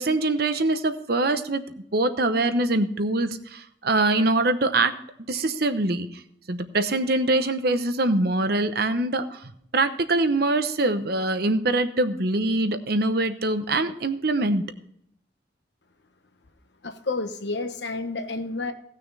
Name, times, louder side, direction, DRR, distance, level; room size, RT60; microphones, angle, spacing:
voice 1, 0.0-1.6 1.9-4.9 5.3-6.1 6.5-14.7, right 2 dB, 55° right, 9 dB, 0.9 m, -23 dB
voice 2, 16.8-18.7, left 3 dB, 70° left, 7 dB, 1.2 m, -30 dB
17.0 x 6.4 x 4.1 m, 0.68 s
head